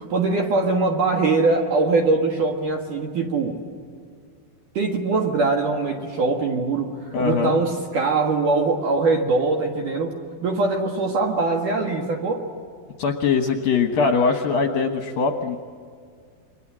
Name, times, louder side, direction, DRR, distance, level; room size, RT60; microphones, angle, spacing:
voice 1, 0.0-3.6 4.7-6.9 7.2-12.5, right 3 dB, 55° right, 1 dB, 2.5 m, -22 dB
voice 2, 7.1-7.6 13.0-15.6, left 5 dB, 65° left, 4 dB, 2.4 m, -21 dB
29.0 x 23.5 x 7.5 m, 2.1 s
omnidirectional pair, 5.6 m